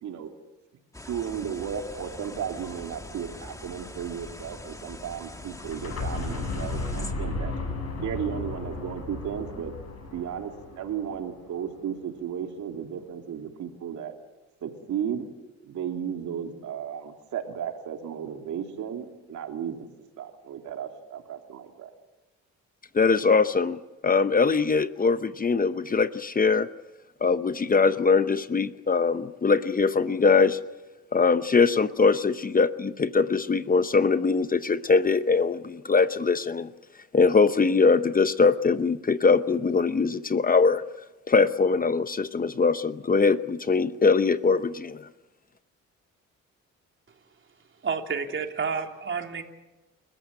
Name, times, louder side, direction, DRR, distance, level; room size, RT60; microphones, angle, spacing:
voice 1, 0.0-0.3 1.0-7.5 8.0-9.7 10.1-14.1 14.6-15.2 15.6-19.9 20.2-21.9, right 8 dB, 75° right, 3 dB, 3.3 m, -34 dB
sound 1, 0.9-7.1, left 1 dB, 10° left, 1.9 m, -43 dB
sound 2, 5.5-11.3, left 3 dB, 55° left, 8.0 m, -34 dB
voice 2, 22.9-26.7 27.2-30.6 31.1-36.7 37.1-40.8 41.3-45.1, left 4 dB, 30° left, 12 dB, 0.9 m, -22 dB
voice 3, 47.8-49.4, right 5 dB, 40° right, 3 dB, 3.2 m, -30 dB
29.0 x 14.5 x 9.0 m, 1.1 s
cardioid pair, 90°, 30 cm